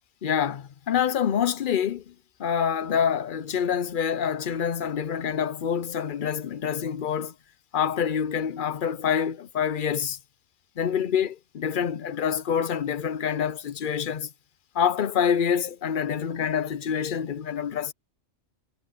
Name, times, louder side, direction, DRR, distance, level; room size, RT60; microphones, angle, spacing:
voice 1, 0.2-2.1 2.4-7.3 7.7-10.2 10.8-14.3 14.7-17.9, left 8 dB, 50° left, 0.7 m, -26 dB
omnidirectional pair, 1.4 m